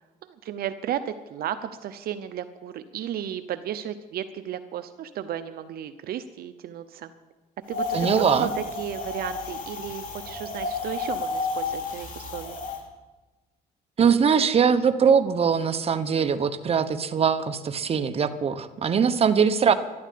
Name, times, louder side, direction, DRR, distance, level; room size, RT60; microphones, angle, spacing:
voice 1, 0.4-7.1 7.7-12.6, right 10 dB, 65° right, 11 dB, 0.8 m, -34 dB
Wind, 7.7-12.8, left 4 dB, 50° left, 3.2 m, -31 dB
voice 2, 7.9-8.5 14.0-19.7, right 6 dB, 35° right, 10 dB, 1.1 m, -22 dB
13.0 x 12.0 x 8.5 m, 1.2 s
cardioid pair, 110°, 17 cm